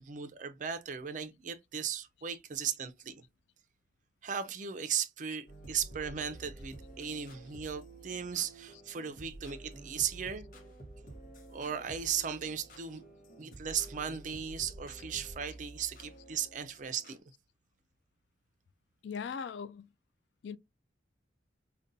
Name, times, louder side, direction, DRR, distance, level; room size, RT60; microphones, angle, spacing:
voice 1, 0.0-3.2 4.2-10.5 11.5-13.0 13.4-17.2, right 8 dB, 45° right, 0.4 m, -37 dB
sound 1, 5.5-17.2, right 2 dB, 50° left, 0.9 m, -50 dB
voice 2, 19.0-19.9 20.4-20.6, left 6 dB, 85° left, 0.4 m, -39 dB
5.1 x 2.2 x 2.6 m
head